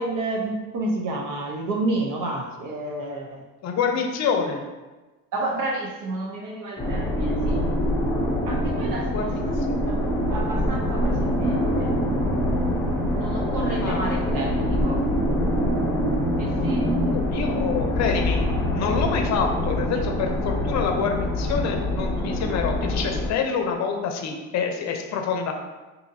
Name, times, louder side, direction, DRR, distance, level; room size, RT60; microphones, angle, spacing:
voice 1, 0.0-3.4 5.3-7.6 8.5-9.5 9.9-10.0 10.3-11.9 13.2-15.0 16.4-16.8, right 2 dB, 55° right, 0 dB, 0.7 m, -30 dB
voice 2, 3.6-4.6 9.0-9.4 9.7-9.8 13.8-14.1 17.1-18.4 18.7-25.5, left 6 dB, 45° left, 4 dB, 0.7 m, -27 dB
sound 1, 6.8-23.3, equal, 10° left, 0.7 m, -24 dB
4.8 x 2.7 x 2.7 m, 1.2 s
supercardioid pair, 105°, 39 cm